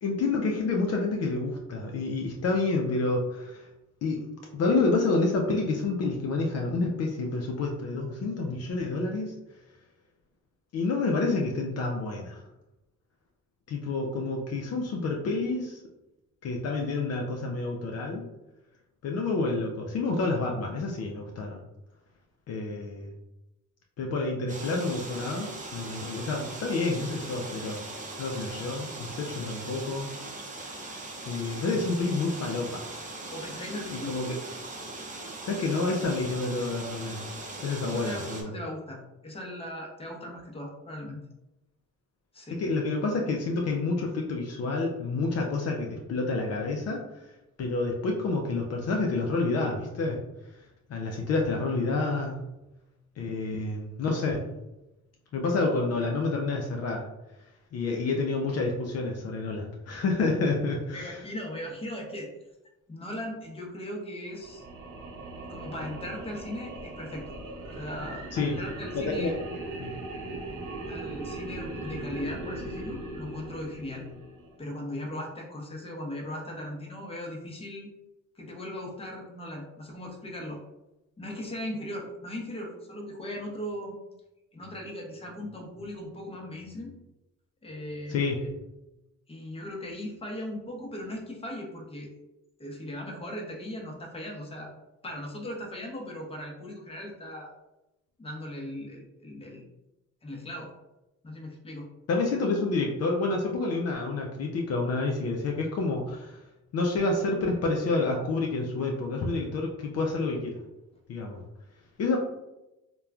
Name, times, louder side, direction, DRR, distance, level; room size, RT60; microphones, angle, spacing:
voice 1, 0.0-3.7 4.0-4.2 4.5-9.3 10.7-12.4 13.7-15.8 16.4-18.3 19.0-21.6 22.5-23.1 24.0-27.8 28.2-30.1 31.3-32.8 34.0-34.4 35.4-37.2 37.6-38.5 42.5-47.3 47.6-50.2 50.9-52.4 53.2-54.4 55.3-57.1 57.7-61.2 68.3-68.6 68.9-69.4 69.8-69.9 88.1-88.5 102.1-106.4 106.7-110.6 111.1-111.4 112.0-112.2, left 3 dB, 55° left, 1 dB, 0.5 m, -29 dB
sound 1, 24.5-38.4, right 2 dB, 25° right, 0.6 m, -40 dB
voice 2, 33.3-34.2 37.8-41.2 42.3-42.6 60.9-62.3 62.9-64.6 65.5-67.2 67.7-69.3 70.9-74.1 74.6-77.9 78.3-80.6 81.2-83.9 84.5-86.9 87.6-88.2 89.3-92.1 92.6-94.7 95.0-97.5 98.2-99.7 100.2-100.7 101.2-101.9, left 1 dB, 20° left, -1 dB, 0.7 m, -38 dB
sound 2, 64.3-74.6, right 2 dB, 75° right, 0.7 m, -39 dB
2.9 x 2.2 x 2.3 m, 0.95 s
cardioid pair, 90°, 30 cm